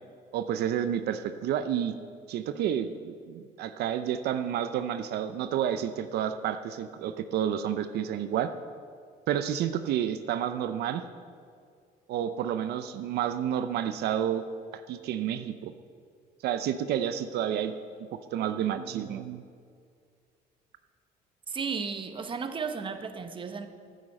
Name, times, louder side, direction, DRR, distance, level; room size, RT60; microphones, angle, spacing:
voice 1, 0.3-1.9 2.3-8.5 9.3-11.0 12.1-14.4 14.7-15.7 16.4-17.7 18.3-19.4, right 10 dB, 75° right, 10 dB, 0.6 m, -30 dB
voice 2, 21.5-23.7, right 5 dB, 30° right, 8 dB, 1.0 m, -34 dB
10.0 x 9.4 x 7.5 m, 2.2 s
cardioid pair, 110°, 17 cm